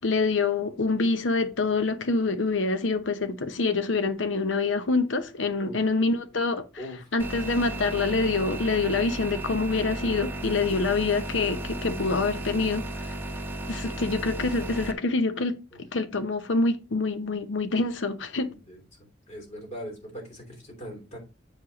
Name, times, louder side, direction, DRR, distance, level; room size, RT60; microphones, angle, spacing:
voice 1, 0.0-6.9 7.1-13.2 13.7-15.6 15.9-18.5, left 3 dB, 85° left, 0.8 m, -26 dB
sound 1, 7.2-14.9, right 2 dB, 10° right, 1.1 m, -34 dB
voice 2, 18.4-18.8 19.3-21.2, equal, 40° left, 3.3 m, -40 dB
8.2 x 4.9 x 4.0 m
head